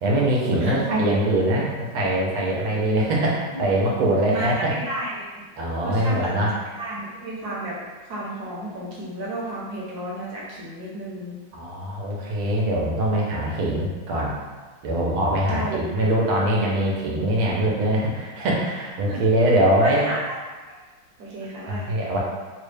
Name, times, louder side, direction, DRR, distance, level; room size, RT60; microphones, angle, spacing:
voice 1, 0.0-4.7 5.6-6.5 11.5-14.3 14.8-20.1 21.7-22.2, right 1 dB, 90° right, -3 dB, 1.6 m, -22 dB
voice 2, 4.3-5.2 5.8-6.3 6.8-7.8 8.0-11.3 15.5-15.8 19.1-19.2 19.8-20.4 21.2-21.9, right 1 dB, 60° right, -5 dB, 1.1 m, -32 dB
3.9 x 2.1 x 3.3 m, 1.3 s
omnidirectional pair, 2.2 m